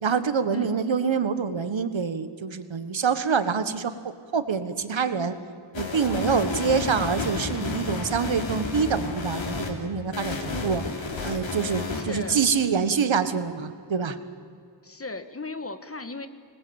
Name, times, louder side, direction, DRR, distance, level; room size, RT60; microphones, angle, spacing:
voice 1, 0.0-5.3 5.7-10.8 11.2-14.2, right 6 dB, 85° right, 11 dB, 1.6 m, -26 dB
sound 1, 5.7-9.7 10.1-12.7, left 3 dB, 85° left, 3.6 m, -32 dB
voice 2, 11.9-12.4 14.8-16.3, left 3 dB, 30° left, 10 dB, 1.5 m, -36 dB
26.0 x 20.5 x 8.9 m, 2.3 s
wide cardioid pair, 100°, 45 cm